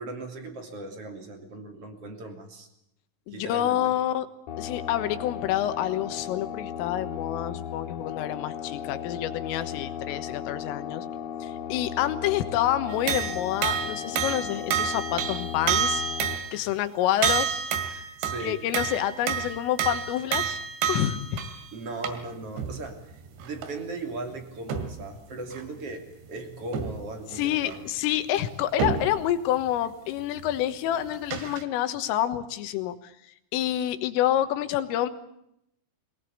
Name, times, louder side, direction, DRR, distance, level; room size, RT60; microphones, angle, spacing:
voice 1, 0.0-2.7 3.3-3.9 18.2-18.6 21.7-27.9, right 2 dB, 35° right, 5 dB, 3.2 m, -38 dB
voice 2, 3.3-4.3 4.6-11.1 11.4-16.0 16.5-17.6 17.9-18.2 18.4-20.6 20.9-21.4 27.3-33.1 33.5-35.1, left 12 dB, 90° left, 11 dB, 3.9 m, -28 dB
sound 1, 4.5-16.4, left 9 dB, 50° left, 3.0 m, -36 dB
sound 2, 12.9-16.6 17.2-21.7 22.0-22.3 22.6-22.8 23.3-23.7 24.7-25.0 25.5-25.6 26.7-27.0 27.3-27.8 28.8-29.2 30.4-30.5 31.0-31.6, right 7 dB, 65° right, 3.9 m, -29 dB
23.0 x 19.5 x 8.5 m, 0.78 s
omnidirectional pair, 5.8 m